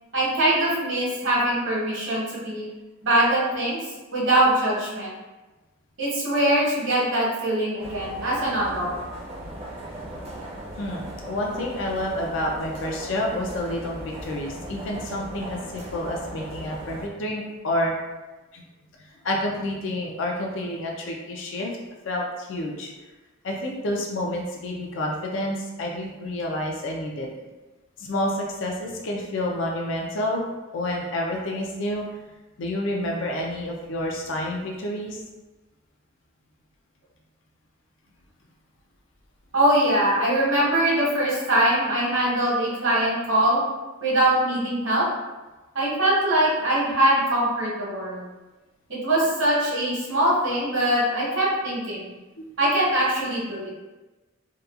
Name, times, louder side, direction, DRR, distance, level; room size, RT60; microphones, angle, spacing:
voice 1, 0.1-2.7 3.0-3.8 4.1-5.1 6.0-8.9 39.5-43.6 44.0-45.1 45.7-48.3 48.9-52.0 52.6-53.7, right 1 dB, 60° right, -6 dB, 0.9 m, -22 dB
sound 1, 7.8-17.1, right 1 dB, 30° right, 0.5 m, -37 dB
voice 2, 10.7-17.9 18.5-18.6 19.0-21.7 22.0-22.9 23.4-27.3 28.0-30.4 30.7-32.1 32.6-35.2 52.4-52.5, left 1 dB, 65° left, -1 dB, 0.4 m, -29 dB
2.8 x 2.2 x 2.3 m, 1.2 s
head